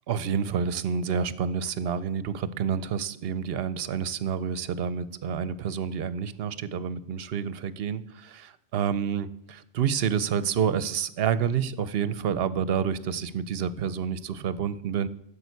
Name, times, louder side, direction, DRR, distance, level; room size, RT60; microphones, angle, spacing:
voice 1, 0.1-15.1, right 7 dB, 65° right, 15 dB, 0.9 m, -28 dB
11.0 x 7.1 x 8.2 m, 0.77 s
omnidirectional pair, 1.2 m